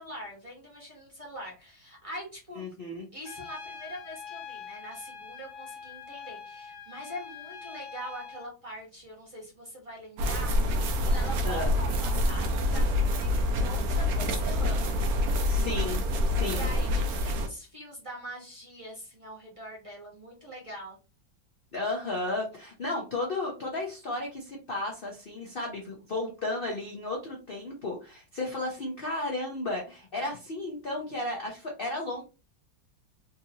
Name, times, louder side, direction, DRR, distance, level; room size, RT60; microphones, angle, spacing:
voice 1, 0.0-2.6 3.1-14.8 16.3-21.0, equal, 20° right, -4 dB, 0.9 m, -43 dB
voice 2, 2.6-3.1 11.4-11.7 15.5-16.7 21.7-32.2, left 2 dB, 55° left, -1 dB, 0.6 m, -34 dB
Trumpet, 3.3-8.5, left 6 dB, 85° left, 1.4 m, -44 dB
sound 1, 10.2-17.5, left 1 dB, 65° right, 1.0 m, -26 dB
3.7 x 2.7 x 2.7 m, 0.32 s
omnidirectional pair, 2.0 m